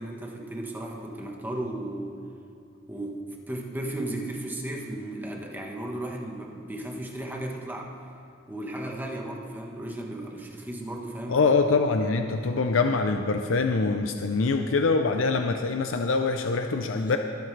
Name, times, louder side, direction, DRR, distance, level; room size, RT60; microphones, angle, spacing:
voice 1, 0.0-2.2 2.9-7.9 8.5-11.6 16.9-17.2, right 1 dB, 10° right, 0 dB, 1.3 m, -35 dB
voice 2, 11.3-17.2, left 4 dB, 85° left, 5 dB, 0.6 m, -24 dB
21.0 x 8.9 x 3.3 m, 2.6 s
head